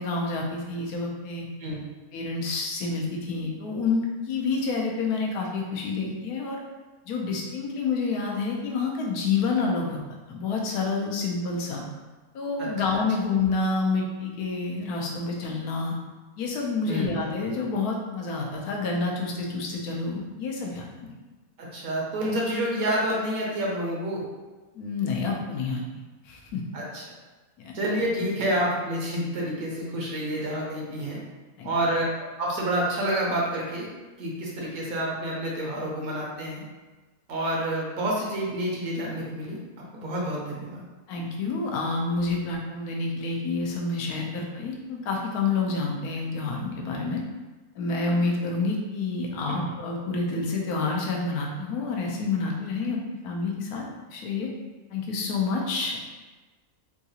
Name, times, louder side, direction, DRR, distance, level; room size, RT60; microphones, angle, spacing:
voice 1, 0.0-1.5 2.1-6.6 7.1-10.0 10.3-11.8 12.3-15.9 16.4-21.1 24.7-25.8 26.2-26.6 27.6-27.8 31.6-31.7 41.1-47.2 47.7-53.0 53.2-54.5 54.9-56.0, left 4 dB, 85° left, 0 dB, 1.1 m, -28 dB
voice 2, 12.6-13.0 16.8-17.1 21.6-24.2 26.7-27.0 27.7-31.2 31.6-32.1 32.4-33.9 34.2-36.6 37.3-39.6 39.9-40.8 49.5-49.6, right 1 dB, 70° right, -4 dB, 1.2 m, -28 dB
3.7 x 2.4 x 2.7 m, 1.2 s
omnidirectional pair, 1.6 m